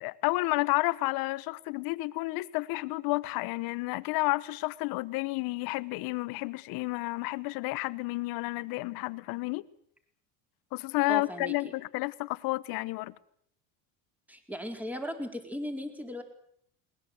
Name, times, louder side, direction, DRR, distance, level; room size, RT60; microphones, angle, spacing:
voice 1, 0.0-9.6 10.7-13.1, left 22 dB, 70° left, 1.2 m, -31 dB
voice 2, 11.1-11.5 14.3-16.2, equal, 5° right, 4.3 m, -37 dB
21.0 x 20.5 x 8.1 m
supercardioid pair, 110°, 37 cm